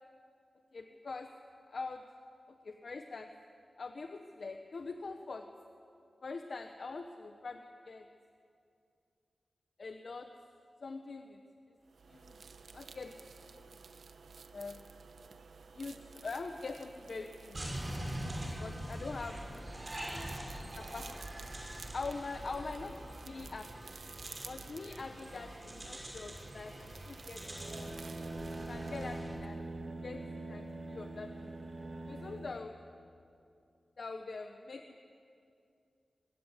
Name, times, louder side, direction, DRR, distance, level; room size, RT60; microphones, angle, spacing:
voice 1, 0.7-1.3 1.7-2.0 2.5-3.3 3.8-5.5 6.2-8.1 9.8-10.3 10.8-11.4 12.1-12.4 12.7-13.2 13.5-13.8 14.5-14.9 15.7-17.6 18.6-19.4 20.1-20.3 20.8-21.1 21.9-23.7 24.4-27.9 28.7-29.6 30.0-31.5 32.1-32.7 34.0-35.0, left 3 dB, 55° left, 5 dB, 1.1 m, -43 dB
sound 1, 11.8-29.7, right 5 dB, 80° right, 1.0 m, -53 dB
sound 2, 17.5-29.3, right 1 dB, 30° right, 5.7 m, -44 dB
sound 3, 27.3-32.6, right 2 dB, 45° right, 2.0 m, -43 dB
24.5 x 20.5 x 8.3 m, 2.5 s
wide cardioid pair, 140°, 0 cm